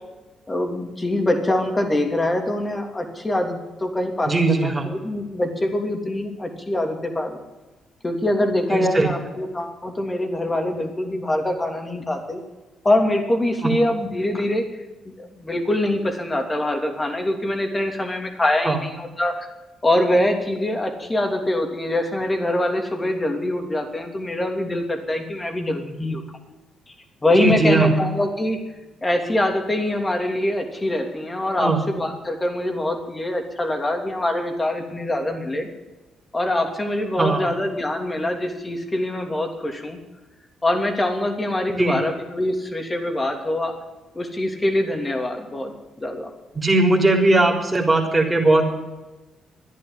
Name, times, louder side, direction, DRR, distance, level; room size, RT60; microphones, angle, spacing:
voice 1, 0.5-7.4 8.0-12.4 12.8-14.6 15.0-19.5 19.8-26.2 26.9-27.0 27.2-28.6 29.0-35.7 36.3-40.0 40.6-43.7 44.1-46.3, left 1 dB, 20° left, 4 dB, 3.0 m, -24 dB
voice 2, 4.2-4.9 8.7-9.1 13.6-13.7 18.6-18.8 27.4-27.9 31.6-31.8 37.2-37.5 41.8-42.0 46.5-48.6, right 2 dB, 15° right, 1 dB, 3.9 m, -19 dB
13.5 x 10.5 x 9.8 m, 1.1 s
cardioid pair, 90°, 0 cm